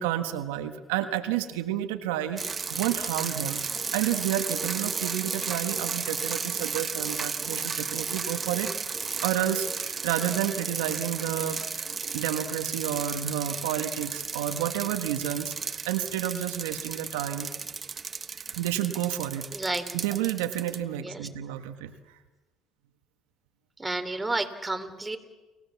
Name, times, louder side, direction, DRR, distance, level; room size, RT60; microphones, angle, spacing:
voice 1, 0.0-8.7 9.2-11.8 12.1-17.5 18.5-19.5 19.9-22.2, right 11 dB, 85° right, 7 dB, 1.5 m, -30 dB
sound 1, 2.4-20.8, right 5 dB, 30° right, 1.5 m, -33 dB
voice 2, 19.5-19.8 21.0-21.3 23.8-25.2, right 2 dB, 10° right, 6 dB, 3.3 m, -31 dB
29.5 x 18.0 x 7.2 m, 1.2 s
supercardioid pair, 75°, 0 cm